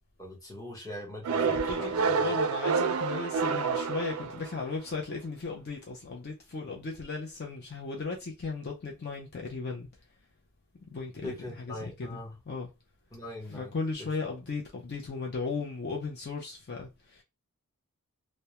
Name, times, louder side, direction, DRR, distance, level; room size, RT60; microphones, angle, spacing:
voice 1, 0.2-2.3 11.2-12.4 13.1-14.1, left 1 dB, 15° left, 0.8 m, -42 dB
sound 1, 1.2-4.8, right 5 dB, 75° right, 0.3 m, -28 dB
voice 2, 1.4-9.9 10.9-12.2 12.5-12.7 13.5-17.2, left 4 dB, 45° left, 0.4 m, -36 dB
2.2 x 2.0 x 2.8 m
head